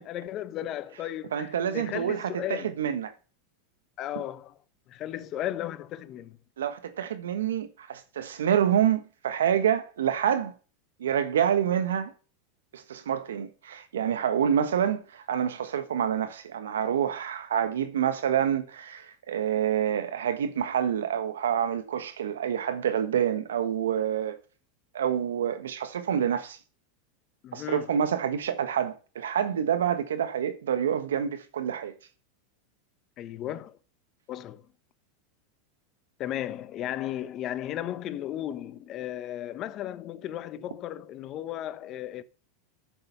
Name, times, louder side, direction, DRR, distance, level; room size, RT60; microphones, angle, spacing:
voice 1, 0.0-2.7 4.0-4.6 4.9-6.4 27.4-27.9 33.2-33.8 34.3-34.6 36.2-42.2, left 12 dB, 45° left, 1.0 m, -35 dB
voice 2, 1.3-3.1 6.6-10.5 11.0-12.1 12.7-24.4 24.9-26.6 27.5-31.9, right 9 dB, 85° right, 1.3 m, -27 dB
8.8 x 6.9 x 6.8 m
hypercardioid pair, 105°, 0 cm